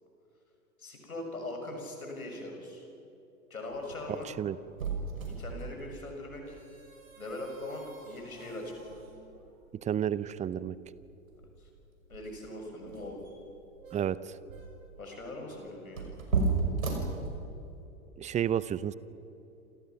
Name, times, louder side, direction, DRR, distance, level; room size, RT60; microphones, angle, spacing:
voice 1, 0.8-2.8 3.5-4.3 5.3-6.6 7.1-8.7 11.6-11.7 12.1-13.2 15.0-16.1, left 2 dB, 80° left, 2 dB, 6.4 m, -41 dB
sound 1, 3.7-17.8, right 4 dB, 70° right, 6.0 m, -37 dB
voice 2, 4.3-4.6 9.8-10.7 13.9-14.3 18.2-18.9, right 10 dB, 15° right, 18 dB, 0.7 m, -31 dB
29.5 x 26.5 x 5.9 m, 2.9 s
figure-of-eight pair, 95°, 42 cm